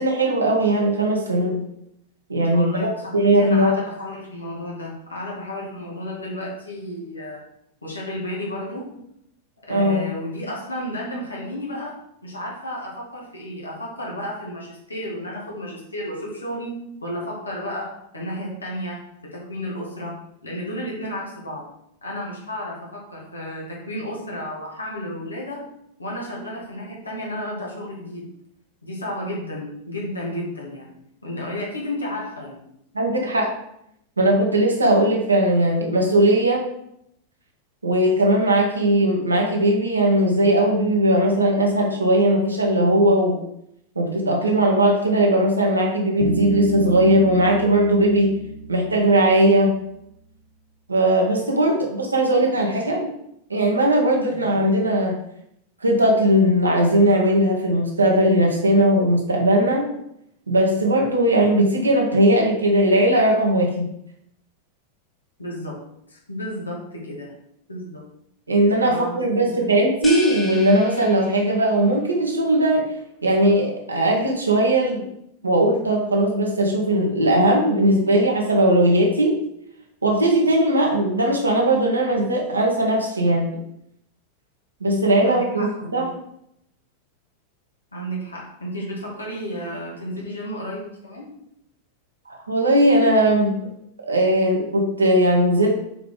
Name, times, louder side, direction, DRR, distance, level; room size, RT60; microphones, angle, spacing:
voice 1, 0.0-1.6 2.3-3.7 9.7-10.0 32.9-33.5 34.2-36.6 37.8-43.4 43.9-48.3 48.7-49.7 50.9-53.1 53.5-55.2 55.8-59.9 60.5-63.9 68.5-72.8 73.2-75.0 75.4-79.3 80.0-83.5 84.8-86.0 92.3-93.5 94.1-95.8, right 1 dB, 80° right, 0 dB, 1.7 m, -19 dB
voice 2, 2.5-7.4 7.8-8.9 9.7-12.0 12.2-20.2 20.4-21.7 22.0-25.6 26.0-28.3 28.8-30.9 31.2-32.6 54.3-54.6 65.4-65.8 66.1-67.3 67.7-68.0 68.9-69.2 69.6-69.8 85.2-86.1 87.9-91.3, left 1 dB, 80° left, -4 dB, 2.3 m, -32 dB
Bass guitar, 46.2-49.9, right 6 dB, 25° right, 0.9 m, -32 dB
sound 1, 70.0-71.7, left 1 dB, 15° left, 1.7 m, -33 dB
7.0 x 5.0 x 3.9 m, 0.75 s
figure-of-eight pair, 90°, 0 cm